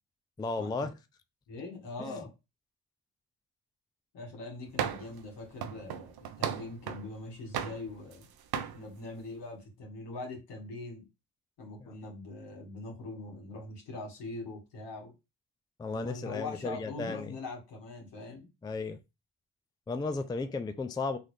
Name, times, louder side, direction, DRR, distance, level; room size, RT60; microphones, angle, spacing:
voice 1, 0.4-0.9 2.0-2.2 11.8-11.9 15.8-17.3 18.6-19.0 19.9-21.2, left 3 dB, 10° left, 0.4 m, -34 dB
voice 2, 1.5-2.3 4.1-8.3 8.7-11.0 11.6-15.1 15.9-18.5, left 2 dB, 75° left, 1.8 m, -42 dB
sound 1, 4.8-5.2 5.6-7.1 7.5-8.2 8.5-8.8, right 8 dB, 65° right, 0.7 m, -35 dB
3.8 x 2.6 x 3.2 m
supercardioid pair, 60°, 41 cm